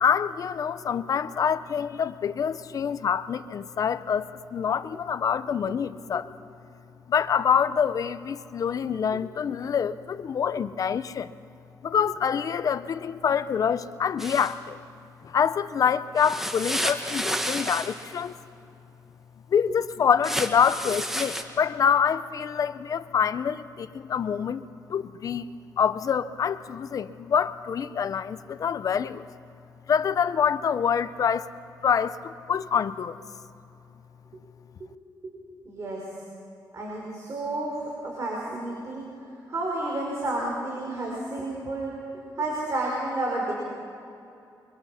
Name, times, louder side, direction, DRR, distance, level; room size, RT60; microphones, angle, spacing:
voice 1, 0.0-6.3 7.1-11.3 11.8-14.8 15.2-18.4 19.5-24.6 24.9-25.5 25.8-29.3 29.9-31.5 31.8-33.2, left 7 dB, 55° left, 13 dB, 0.7 m, -26 dB
sound 1, 14.2-14.5 16.2-18.1 20.2-21.4, equal, 5° right, 1.8 m, -30 dB
voice 2, 35.6-36.1 36.7-41.9 42.4-43.5, right 2 dB, 45° right, -3 dB, 5.4 m, -31 dB
28.5 x 24.5 x 5.7 m, 2.6 s
cardioid pair, 110°, 7 cm